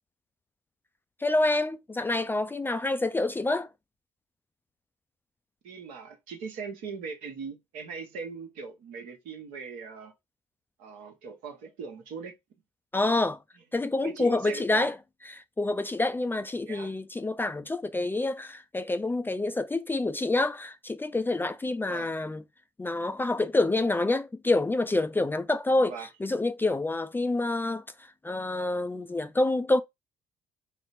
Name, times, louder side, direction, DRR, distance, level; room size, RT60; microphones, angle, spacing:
voice 1, 1.2-3.7 12.9-13.4 13.7-14.9 15.3-22.4 22.8-27.8 28.2-29.8, left 2 dB, 15° left, 0.3 m, -27 dB
voice 2, 5.6-10.1 10.8-12.3 12.9-13.1 14.0-14.9 16.7-16.9 21.9-22.1 25.9-26.1, right 5 dB, 75° right, 1.0 m, -40 dB
4.2 x 2.0 x 4.2 m
hypercardioid pair, 55°, 14 cm